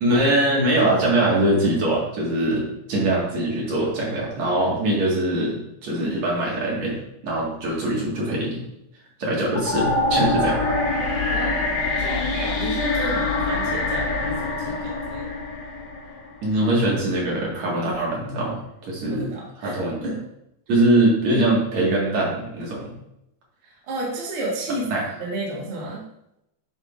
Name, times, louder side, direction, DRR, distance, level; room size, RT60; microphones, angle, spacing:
voice 1, 0.0-7.0 7.2-8.6 9.2-10.8 16.4-19.3 19.6-20.1 20.7-22.9 24.9-25.0, right 1 dB, 65° right, -4 dB, 3.0 m, -22 dB
sound 1, 9.5-16.6, left 2 dB, 85° left, 0.8 m, -25 dB
voice 2, 11.3-15.3 19.1-19.7 20.0-20.2 23.6-24.9 25.2-26.0, right 1 dB, 50° right, -4 dB, 2.2 m, -31 dB
9.0 x 6.1 x 2.5 m, 0.82 s
omnidirectional pair, 3.5 m